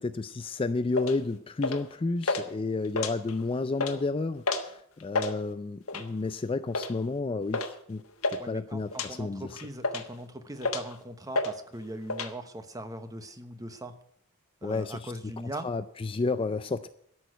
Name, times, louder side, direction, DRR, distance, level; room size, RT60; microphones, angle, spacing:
voice 1, 0.0-8.0 8.3-9.6 14.6-15.3 15.6-16.9, left 3 dB, 25° left, 12 dB, 0.4 m, -31 dB
sound 1, 0.9-1.2 1.6-1.9 2.2-2.4 2.8-3.4 3.7-4.0 4.4-4.7 5.0-5.3 5.9-6.2 6.7-6.9 7.5-7.7 8.0-8.4 8.9-9.1 9.6-10.2 10.6-10.9 11.3-11.5 11.8-12.3, left 3 dB, 70° left, 1.3 m, -30 dB
voice 2, 8.4-13.9 14.6-15.7, right 1 dB, 15° right, 9 dB, 1.0 m, -40 dB
12.5 x 6.4 x 9.1 m, 0.66 s
head